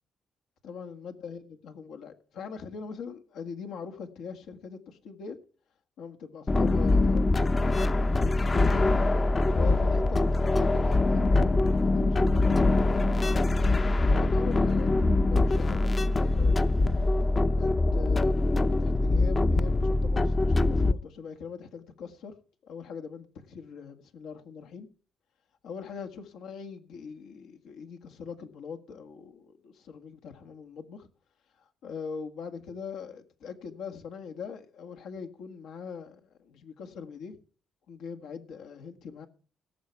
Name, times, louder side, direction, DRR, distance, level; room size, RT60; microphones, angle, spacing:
voice 1, 0.6-5.4 6.0-7.6 8.5-8.9 9.5-13.1 14.1-16.8 17.6-22.3 22.6-24.9 25.6-31.1 31.6-37.4 37.9-39.3, left 6 dB, 85° left, 1.7 m, -42 dB
sound 1, 6.5-20.9, left 2 dB, 30° left, 0.7 m, -23 dB
17.5 x 7.3 x 4.5 m
cardioid pair, 90°, 0 cm